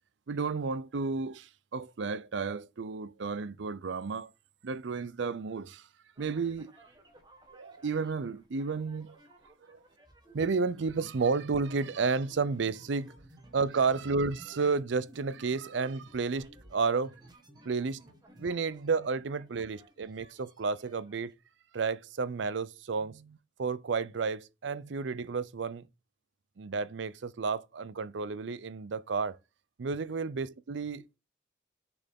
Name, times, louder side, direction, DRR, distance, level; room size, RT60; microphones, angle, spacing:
voice 1, 0.3-4.3 4.6-5.9 6.2-6.7 7.5-9.2 9.7-9.8 10.3-13.1 13.5-17.1 17.6-18.0 18.4-21.3 21.7-25.9 26.6-29.4 29.8-31.0, right 4 dB, 75° right, 0.5 m, -32 dB
sound 1, 6.2-21.3, right 1 dB, 20° right, 1.6 m, -57 dB
6.6 x 6.1 x 3.6 m
head